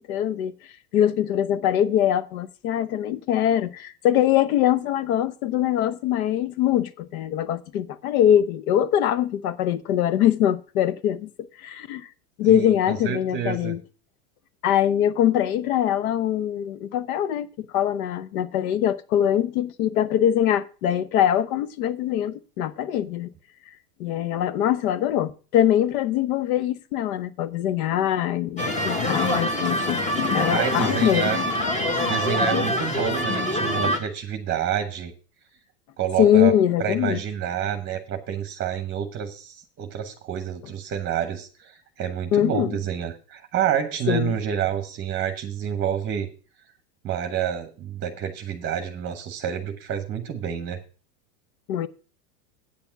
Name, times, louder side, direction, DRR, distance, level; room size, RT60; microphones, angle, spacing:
voice 1, 0.1-0.5 0.9-11.3 11.6-12.1 12.4-13.8 14.6-23.3 24.0-30.0 30.3-31.3 36.2-37.2 42.3-42.8 44.1-44.3 51.7-51.9, left 10 dB, 70° left, 0.9 m, -23 dB
voice 2, 12.4-13.7 30.5-31.4 32.1-35.1 36.0-36.5 36.8-46.3 47.0-50.8, right 9 dB, 25° right, 1.0 m, -28 dB
sound 1, 28.6-34.0, left 1 dB, 15° left, 1.2 m, -24 dB
8.7 x 6.9 x 5.9 m
supercardioid pair, 135°, 46 cm